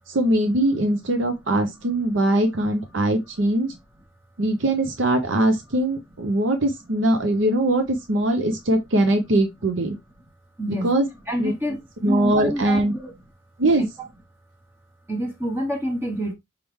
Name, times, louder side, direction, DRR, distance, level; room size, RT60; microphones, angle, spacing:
voice 1, 0.1-3.7 4.4-7.8 8.1-10.0 10.7-11.1 11.4-11.5 12.0-12.9 13.6-13.9, right 1 dB, 90° right, 0.8 m, -21 dB
voice 2, 10.6-10.9 11.3-11.8 12.1-13.1 13.8-13.9 15.1-16.3, right 1 dB, 15° right, 0.8 m, -27 dB
4.9 x 3.6 x 3.0 m
head